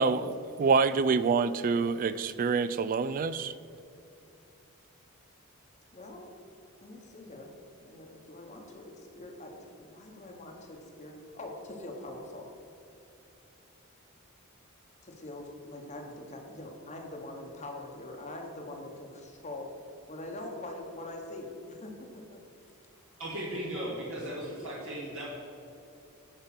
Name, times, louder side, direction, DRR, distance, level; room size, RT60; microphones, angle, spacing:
voice 1, 0.0-3.5, right 4 dB, 40° right, 16 dB, 0.3 m, -26 dB
voice 2, 5.9-6.3 6.8-7.5 7.8-12.5 15.0-19.7 20.1-22.4 24.3-24.8, left 1 dB, 35° left, 1 dB, 1.0 m, -43 dB
voice 3, 23.2-25.2, right 1 dB, 65° right, -5 dB, 1.7 m, -36 dB
10.0 x 5.1 x 6.0 m, 2.8 s
head